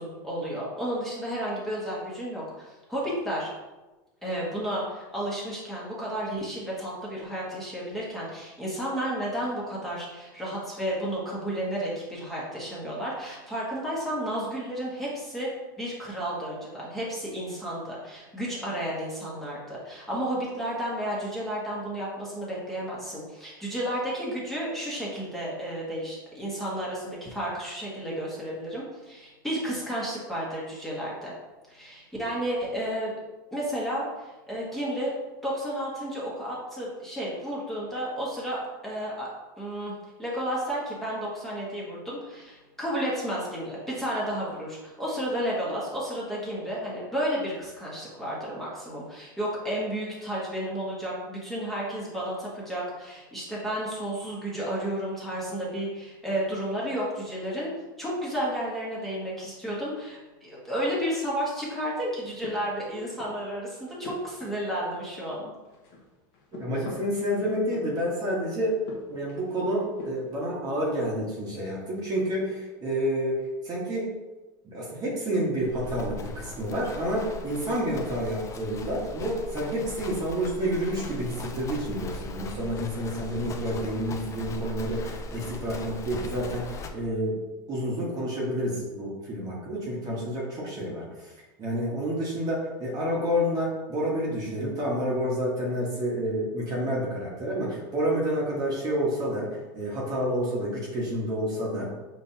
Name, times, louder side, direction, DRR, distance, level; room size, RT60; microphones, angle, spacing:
voice 1, 0.0-3.5 4.2-15.5 15.8-31.3 31.7-33.1 33.5-35.1 35.4-39.3 39.6-39.9 40.2-57.7 58.0-65.5, equal, ahead, -7 dB, 1.5 m, -32 dB
sound 1, 62.1-63.5 63.8-65.4 65.6-68.2 68.7-70.4, left 2 dB, 60° left, 1.3 m, -44 dB
voice 2, 66.5-68.8 69.1-74.1 74.6-87.4 87.7-91.3 91.6-101.8, equal, 35° right, -4 dB, 1.4 m, -29 dB
Livestock farm animals working animals, 75.6-86.9, left 1 dB, 25° left, 0.5 m, -39 dB
5.2 x 3.4 x 2.8 m, 1.1 s
supercardioid pair, 120°, 11 cm